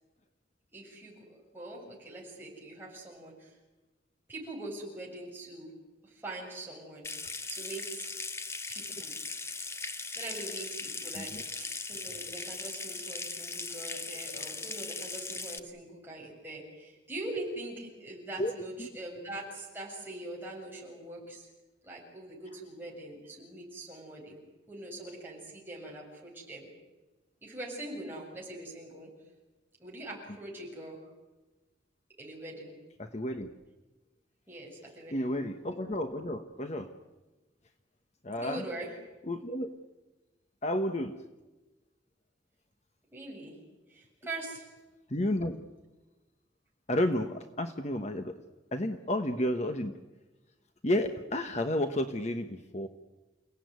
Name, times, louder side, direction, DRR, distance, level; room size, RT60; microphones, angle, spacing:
voice 1, 0.7-3.5 4.3-5.7 6.0-7.1 7.5-8.1 8.7-9.2 10.2-21.5 21.8-24.4 24.7-26.7 27.4-29.1 29.8-31.0 32.2-32.7 34.5-35.3 38.4-38.9 43.1-43.6 43.9-44.7, right 2 dB, 10° right, -3 dB, 7.3 m, -43 dB
Water tap faucet / Sink (filling or washing) / Trickle dribble, 7.0-15.6, left 3 dB, 15° left, 0.9 m, -39 dB
voice 2, 33.0-33.5 35.1-36.9 38.2-38.6 39.3-39.7 40.6-41.1 45.1-45.6 46.9-48.3 48.7-49.9 50.8-52.9, left 1 dB, 35° left, 7 dB, 1.2 m, -31 dB
29.5 x 17.5 x 9.5 m, 1.1 s
head